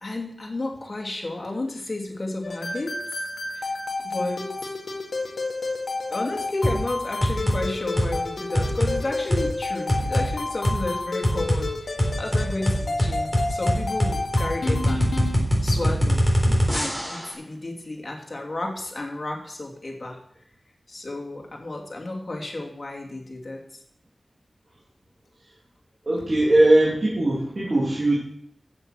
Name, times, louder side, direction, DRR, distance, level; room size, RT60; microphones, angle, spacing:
voice 1, 0.0-3.0 3.5-3.7 4.0-4.5 6.1-15.1 15.6-16.2 16.7-20.2 20.9-23.6, left 2 dB, 50° left, 1 dB, 2.6 m, -32 dB
sound 1, 2.4-15.4, left 3 dB, 80° left, 1.8 m, -31 dB
sound 2, 6.6-6.8 7.2-7.6 8.0-8.2 8.5-8.9 9.3-9.4 9.9-10.3 10.6-10.8 11.2-11.6 12.0-17.3, equal, ahead, 4.1 m, -22 dB
voice 2, 26.0-28.2, right 1 dB, 55° right, -5 dB, 3.2 m, -20 dB
8.3 x 7.8 x 6.2 m, 0.68 s
cardioid pair, 45°, 0 cm